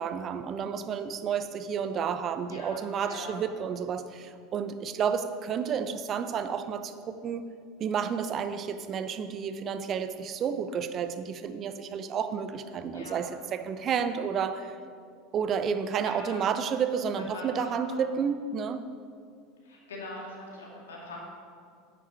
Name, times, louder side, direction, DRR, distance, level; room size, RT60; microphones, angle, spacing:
voice 1, 0.0-7.5 7.8-14.8 15.3-18.8, right 7 dB, 40° right, 11 dB, 0.7 m, -31 dB
voice 2, 2.5-3.4 12.9-13.2 16.0-16.4 17.1-18.1 19.6-21.2, left 2 dB, 75° left, -3 dB, 2.6 m, -42 dB
9.4 x 9.3 x 4.5 m, 2.2 s
figure-of-eight pair, 75°, 0 cm